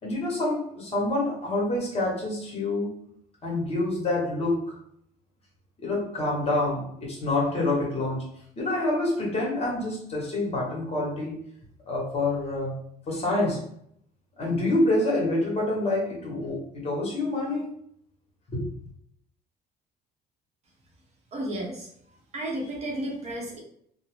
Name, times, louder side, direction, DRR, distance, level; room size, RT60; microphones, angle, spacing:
voice 1, 0.0-2.9 3.4-4.8 5.8-8.3 8.6-11.4 11.9-12.8 13.1-13.6 14.4-17.7 18.5-18.6, left 2 dB, 35° left, -3 dB, 1.1 m, -27 dB
voice 2, 21.3-21.9 22.3-23.6, right 1 dB, 40° right, -1 dB, 0.8 m, -32 dB
2.5 x 2.0 x 3.1 m, 0.68 s
cardioid pair, 110°, 17 cm